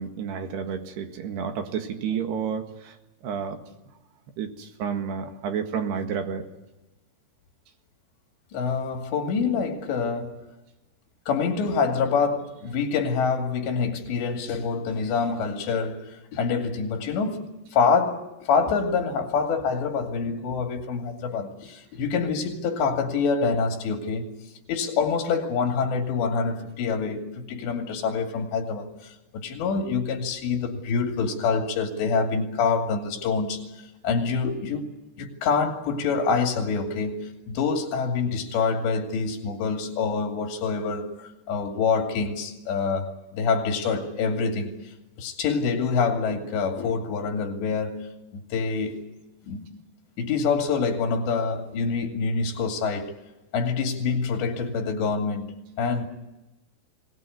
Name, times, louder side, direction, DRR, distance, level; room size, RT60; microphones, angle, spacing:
voice 1, 0.0-2.9 3.2-3.6 4.4-6.4, right 7 dB, 75° right, 3.8 m, -30 dB
voice 2, 8.5-10.4 11.3-24.3 24.7-33.6 34.0-34.8 35.2-44.7 45.2-48.1 48.3-49.0 49.4-49.7 50.2-53.1 53.5-55.5 55.8-56.1, left 5 dB, 85° left, 4.7 m, -26 dB
23.5 x 19.0 x 9.5 m
omnidirectional pair, 4.9 m